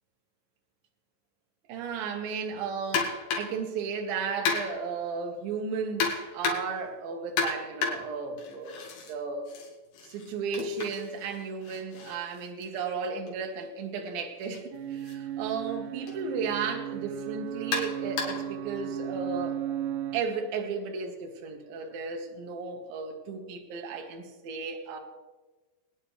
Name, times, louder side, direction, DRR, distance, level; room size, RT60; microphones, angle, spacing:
voice 1, 1.7-9.5 10.0-19.6 20.1-25.0, right 5 dB, 65° right, 2 dB, 2.9 m, -34 dB
sound 1, 2.9-3.6 4.5-4.9 6.0-6.8 7.4-9.1 9.5-13.3 14.4-14.6 15.0-15.1 16.1-16.2 17.7-18.5, left 5 dB, 75° left, 4.1 m, -33 dB
sound 2, 14.7-20.2, right 11 dB, 90° right, 3.0 m, -35 dB
23.5 x 9.7 x 3.3 m, 1.2 s
omnidirectional pair, 5.0 m